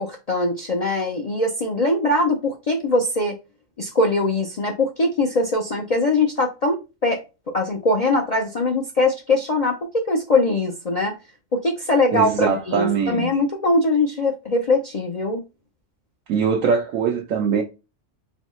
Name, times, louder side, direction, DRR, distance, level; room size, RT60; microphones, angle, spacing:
voice 1, 0.0-3.4 3.8-11.2 11.5-15.4, left 2 dB, 45° left, 0.5 m, -22 dB
voice 2, 12.1-13.3 16.3-17.6, right 6 dB, 90° right, 1.0 m, -22 dB
4.1 x 3.0 x 3.0 m
omnidirectional pair, 1.3 m